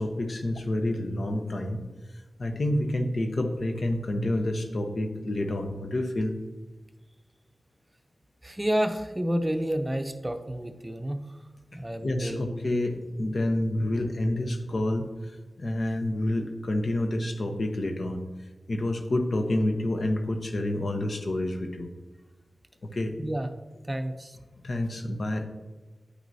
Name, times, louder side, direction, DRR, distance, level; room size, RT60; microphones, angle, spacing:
voice 1, 0.0-1.8 2.4-6.3 12.0-18.2 18.7-21.9 22.8-23.1 24.6-25.4, left 1 dB, 65° left, 5 dB, 0.8 m, -28 dB
voice 2, 8.4-11.4 11.7-12.6 23.2-23.5 23.9-24.4, equal, 20° right, 7 dB, 0.6 m, -30 dB
9.4 x 6.0 x 2.7 m, 1.2 s
cardioid pair, 45°, 0 cm